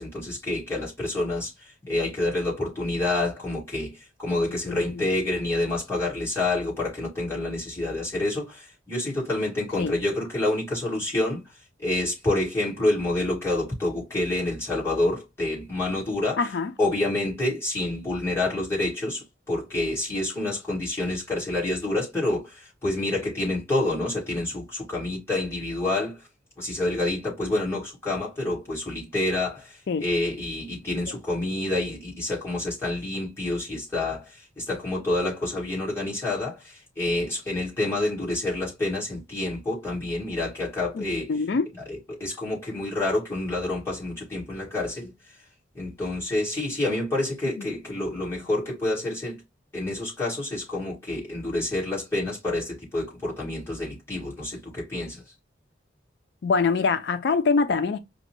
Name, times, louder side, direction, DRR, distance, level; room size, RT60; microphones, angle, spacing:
voice 1, 0.0-11.4 11.8-16.5 16.8-26.2 26.6-41.3 41.9-45.1 45.7-49.4 49.7-55.2, left 2 dB, 15° left, 1.8 m, -28 dB
voice 2, 16.4-16.7 29.9-30.0 41.0-41.7 47.6-47.7 56.4-58.0, left 4 dB, 60° left, 0.4 m, -24 dB
5.0 x 2.1 x 3.0 m
head